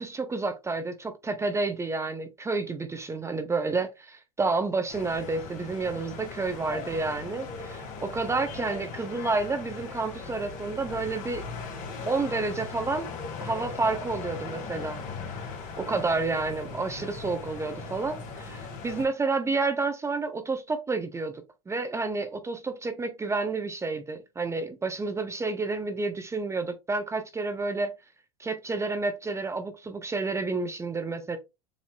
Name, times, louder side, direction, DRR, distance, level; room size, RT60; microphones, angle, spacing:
voice 1, 0.0-11.5 12.1-13.1 13.4-15.0 15.8-21.3 21.7-27.9 28.4-31.4, right 3 dB, 15° right, 0.8 m, -30 dB
sound 1, 4.9-19.0, left 4 dB, 45° left, 1.9 m, -39 dB
7.3 x 2.8 x 2.4 m
hypercardioid pair, 100°, 18 cm